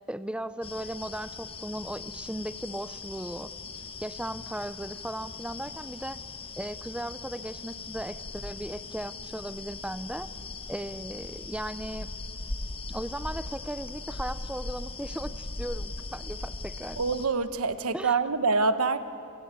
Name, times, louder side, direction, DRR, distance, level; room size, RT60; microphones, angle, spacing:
voice 1, 0.0-3.5 4.0-6.2 6.6-10.3 10.7-12.1 12.9-17.0 17.9-18.2, right 1 dB, 5° right, 13 dB, 0.5 m, -37 dB
sound 1, 0.6-17.3, left 3 dB, 25° left, 1.1 m, -39 dB
voice 2, 17.0-19.0, right 4 dB, 90° right, 11 dB, 1.1 m, -25 dB
28.5 x 18.0 x 9.0 m, 2.6 s
head